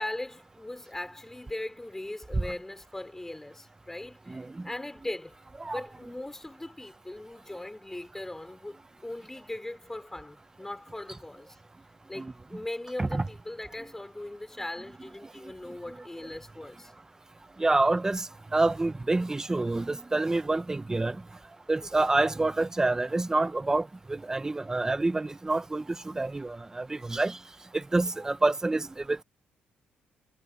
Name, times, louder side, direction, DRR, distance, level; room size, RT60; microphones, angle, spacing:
voice 1, 0.0-5.4 5.6-11.6 12.1-16.9 21.8-22.1 28.0-28.3, left 1 dB, 10° left, 5.7 m, -39 dB
voice 2, 17.6-21.2 21.7-27.4 27.7-29.2, right 2 dB, 15° right, 1.3 m, -27 dB
cardioid pair, 95°, 4 cm